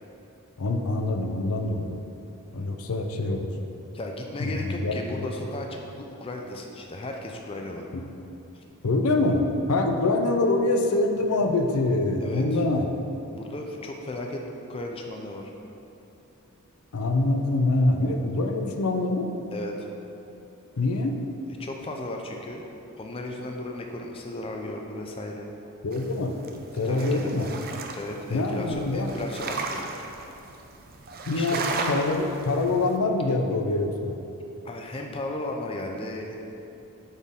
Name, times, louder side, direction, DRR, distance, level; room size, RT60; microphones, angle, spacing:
voice 1, 0.6-2.0 2.5-3.5 4.4-5.3 7.9-8.0 8.8-12.9 16.9-19.3 20.8-21.2 25.8-26.4 26.8-27.5 28.3-29.1 31.3-31.6 31.9-34.1, left 2 dB, 70° left, 4 dB, 0.5 m, -25 dB
voice 2, 3.9-7.9 8.5-8.6 12.2-12.6 13.3-14.4 14.7-15.5 19.5-19.9 21.6-22.6 23.0-25.5 26.8-27.3 27.9-29.8 31.3-31.6 34.6-36.3, left 1 dB, 25° left, 1 dB, 0.4 m, -35 dB
sound 1, 25.9-33.0, right 3 dB, 40° right, 0.5 m, -35 dB
8.9 x 4.2 x 3.6 m, 2.9 s
head